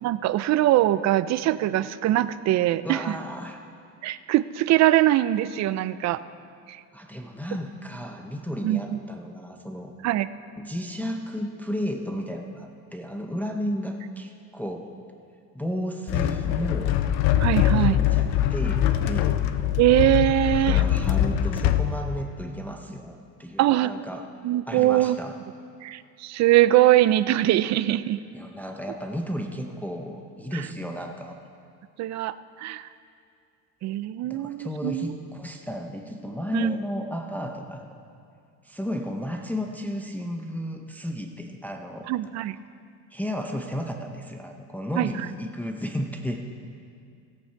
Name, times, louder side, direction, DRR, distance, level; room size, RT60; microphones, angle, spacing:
voice 1, 0.0-3.0 4.0-6.2 6.7-6.8 8.6-9.0 10.0-10.3 17.4-18.0 19.8-20.8 23.6-23.9 24.4-25.2 25.8-28.2 32.0-32.9 33.8-35.1 36.5-36.7 42.1-42.6 45.0-45.1, right 14 dB, 45° right, 15 dB, 0.4 m, -22 dB
voice 2, 2.8-3.6 6.9-9.9 10.6-14.9 15.5-16.9 17.7-19.4 20.7-24.3 24.7-25.3 28.3-31.4 34.2-38.0 38.6-42.1 43.1-46.4, equal, 5° left, 3 dB, 0.6 m, -33 dB
sound 1, 16.1-21.9, left 11 dB, 75° left, 0.7 m, -23 dB
16.0 x 8.4 x 4.5 m, 2.3 s
cardioid pair, 120°, 40 cm